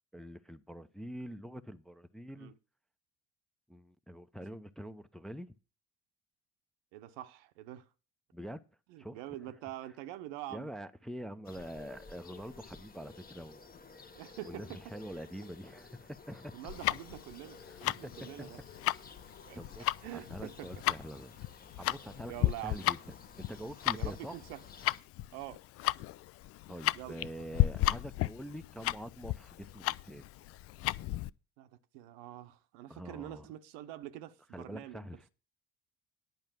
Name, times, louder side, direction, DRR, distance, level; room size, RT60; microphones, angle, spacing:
voice 1, 0.1-2.5 3.7-5.5 8.3-8.6 9.0-9.2 10.5-13.7 14.4-16.5 17.7-18.5 19.5-19.9 20.1-21.3 21.8-24.3 26.7-30.2 32.9-33.5 34.5-35.3, equal, ahead, 0.7 m, -45 dB
voice 2, 6.9-7.9 8.9-10.7 14.1-14.8 16.5-18.6 19.5-19.6 20.0-20.7 22.3-22.8 24.0-24.6 25.3-25.6 26.9-27.2 31.6-35.3, right 13 dB, 65° right, 0.9 m, -45 dB
sound 1, 11.4-25.0, left 4 dB, 25° left, 1.2 m, -54 dB
Tick-tock, 16.7-31.3, left 16 dB, 40° left, 0.4 m, -34 dB
10.5 x 5.4 x 7.1 m
figure-of-eight pair, 55°, 38 cm